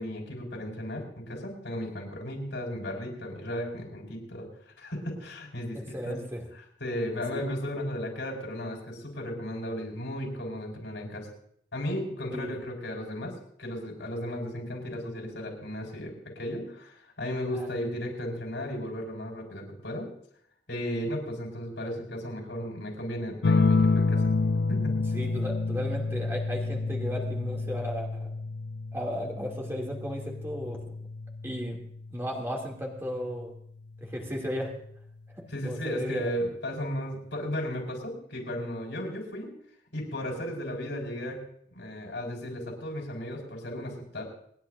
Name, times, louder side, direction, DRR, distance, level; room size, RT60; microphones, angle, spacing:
voice 1, 0.0-5.8 6.0-6.2 6.8-11.3 11.7-13.3 13.6-20.1 20.7-24.2 24.7-25.0 35.5-39.5 39.9-41.4 41.7-44.2, equal, 85° left, 0 dB, 5.1 m, -35 dB
voice 2, 5.7-6.4 12.3-12.6 17.5-17.7 25.1-28.3 28.9-30.9 31.4-31.8 32.1-33.5 34.0-34.7 35.3-36.3, equal, 15° right, -1 dB, 2.6 m, -35 dB
sound 1, 23.4-32.5 34.0-34.5, left 3 dB, 70° left, 0.6 m, -29 dB
28.0 x 10.0 x 2.6 m, 0.65 s
head